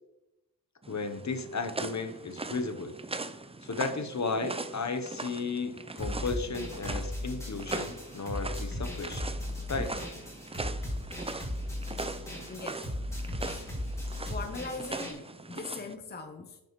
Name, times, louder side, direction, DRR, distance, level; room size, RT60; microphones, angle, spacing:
sound 1, 0.8-15.9, right 3 dB, 15° right, 0.4 m, -40 dB
voice 1, 0.9-3.0 3.6-9.3 9.7-9.9, left 4 dB, 45° left, 0.9 m, -34 dB
sound 2, 6.0-15.1, left 1 dB, 5° left, 2.3 m, -37 dB
voice 2, 12.5-12.9 13.4-13.6 14.3-16.6, left 3 dB, 25° left, 0.7 m, -40 dB
11.0 x 6.8 x 3.1 m
wide cardioid pair, 120°, 38 cm